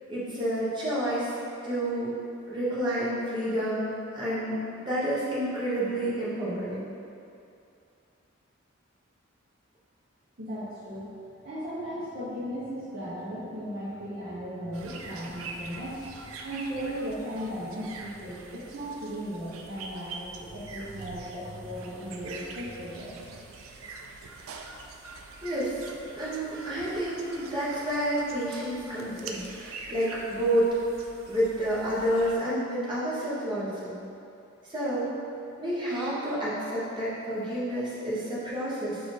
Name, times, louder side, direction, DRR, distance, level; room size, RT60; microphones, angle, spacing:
voice 1, 0.1-1.3 1.6-2.1 2.5-4.6 4.9-6.9 25.4-25.8 26.2-30.7 31.3-34.0 34.7-35.1 35.6-39.0, right 1 dB, 20° right, -9 dB, 1.0 m, -29 dB
voice 2, 10.4-11.1 11.4-16.2 16.4-23.1, equal, 45° right, -11 dB, 0.8 m, -36 dB
sound 1, 14.7-32.4, right 4 dB, 80° right, 0.4 m, -44 dB
4.3 x 2.5 x 4.9 m, 2.6 s
head